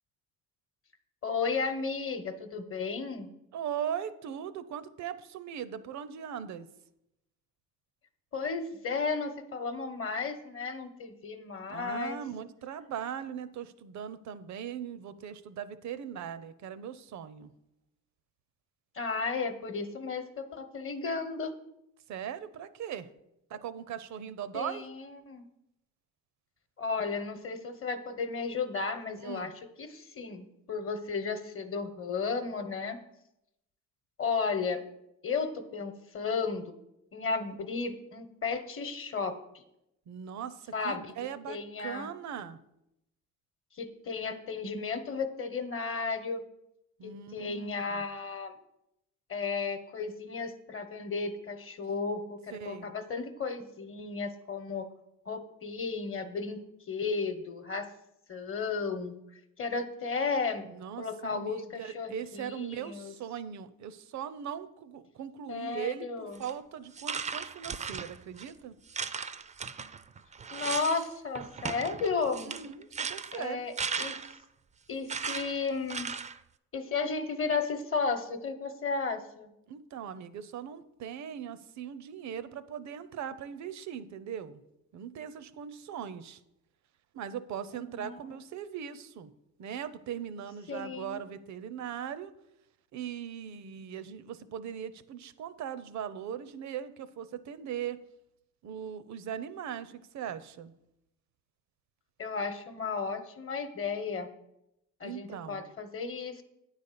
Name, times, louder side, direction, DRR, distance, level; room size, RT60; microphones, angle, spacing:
voice 1, 1.2-3.3 8.3-12.2 18.9-21.5 24.5-25.4 26.8-29.5 29.8-33.0 34.2-34.8 35.2-36.7 37.1-39.4 40.7-41.1 41.5-42.1 43.7-46.4 47.0-48.6 49.3-54.9 55.3-56.6 56.9-57.9 58.3-59.2 59.6-60.6 61.0-63.1 65.5-66.4 70.5-72.5 73.3-74.2 74.9-76.1 76.7-79.5 87.7-88.3 90.7-91.2 102.2-104.3 105.0-106.4, left 4 dB, 45° left, 9 dB, 1.0 m, -34 dB
voice 2, 3.5-6.7 11.7-17.5 22.1-23.1 23.5-24.9 29.2-29.5 40.1-42.6 47.0-48.0 52.5-52.9 60.6-61.1 61.3-68.7 72.4-73.7 79.7-84.6 84.9-86.4 87.1-89.3 89.6-92.3 92.9-98.0 98.6-100.7 105.0-105.6, right 9 dB, 65° right, 14 dB, 0.6 m, -39 dB
sound 1, 66.3-66.5 66.9-68.5 68.9-71.1 71.3-74.4 75.1-76.4, right 5 dB, 25° right, 0.4 m, -37 dB
9.4 x 4.1 x 6.7 m, 0.84 s
cardioid pair, 90°, 30 cm